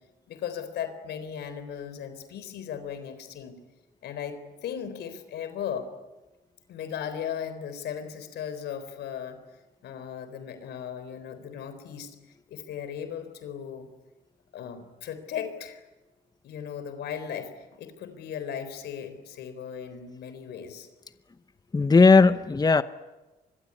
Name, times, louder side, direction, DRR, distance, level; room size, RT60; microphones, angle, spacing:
voice 1, 0.3-3.6 4.0-5.9 6.7-9.4 9.8-12.1 12.5-13.9 14.5-15.8 16.4-20.9, left 8 dB, 85° left, 4.0 m, -37 dB
voice 2, 21.7-22.8, left 4 dB, 25° left, 0.9 m, -17 dB
25.0 x 22.0 x 9.7 m
cardioid pair, 85°, 17 cm